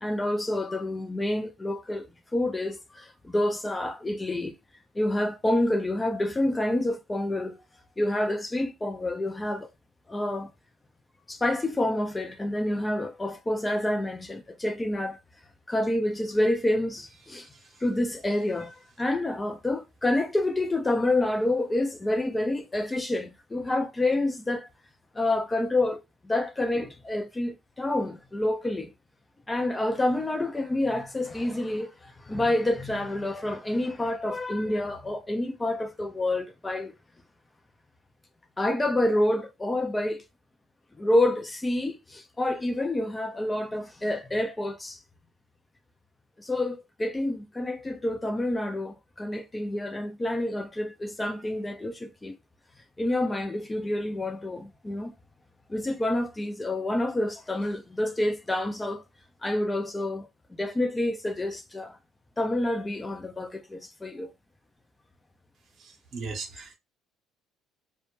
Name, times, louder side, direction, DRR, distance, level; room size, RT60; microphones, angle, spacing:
voice 1, 0.0-2.1 2.3-4.6 4.9-7.6 8.0-9.7 10.1-10.5 11.3-15.2 15.7-17.5 17.8-24.7 25.1-28.9 29.5-36.9 38.6-40.2 41.0-45.0 46.4-52.4 53.0-55.1 55.7-59.0 59.4-60.3 60.6-62.0 62.4-64.3, left 1 dB, 15° left, 0.3 m, -28 dB
voice 2, 65.8-66.7, right 4 dB, 55° right, 0.7 m, -38 dB
2.1 x 2.1 x 2.9 m
cardioid pair, 110°, 0 cm